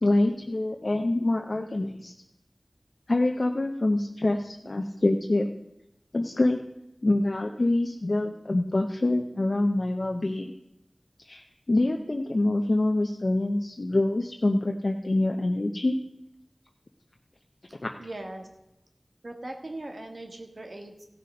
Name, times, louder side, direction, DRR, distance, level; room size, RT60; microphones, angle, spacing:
voice 1, 0.0-2.1 3.1-5.5 6.1-6.6 7.0-10.5 11.2-11.4 11.7-16.0 17.8-17.9, left 2 dB, 65° left, 2 dB, 0.8 m, -25 dB
voice 2, 18.0-18.5 19.2-21.0, right 1 dB, 70° right, 4 dB, 1.7 m, -39 dB
15.5 x 6.5 x 5.5 m, 0.88 s
wide cardioid pair, 45°, 0 cm